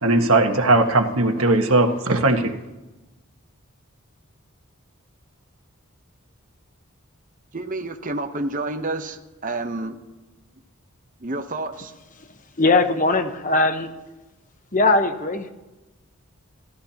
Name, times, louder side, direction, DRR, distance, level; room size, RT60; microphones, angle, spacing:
voice 1, 0.0-2.5, right 2 dB, 75° right, 4 dB, 1.5 m, -18 dB
voice 2, 7.5-10.0 11.2-11.9, right 2 dB, 35° right, 6 dB, 0.9 m, -29 dB
voice 3, 12.6-13.9 14.7-15.5, left 2 dB, 35° left, 8 dB, 1.0 m, -20 dB
28.0 x 13.0 x 2.9 m, 1.1 s
head